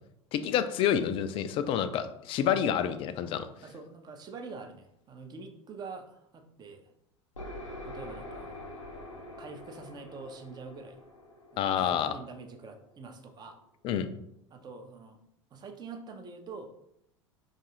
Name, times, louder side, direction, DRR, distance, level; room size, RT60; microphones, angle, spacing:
voice 1, 0.3-3.5 11.6-12.1 13.8-14.1, left 9 dB, 35° left, 11 dB, 0.3 m, -28 dB
voice 2, 3.6-6.9 7.8-8.6 9.4-11.0 11.5-13.6 14.5-15.2 15.5-16.7, right 4 dB, 25° right, 5 dB, 0.6 m, -45 dB
sound 1, 7.4-13.0, left 1 dB, 85° left, 0.8 m, -45 dB
4.6 x 2.4 x 2.9 m, 0.76 s
figure-of-eight pair, 80°, 16 cm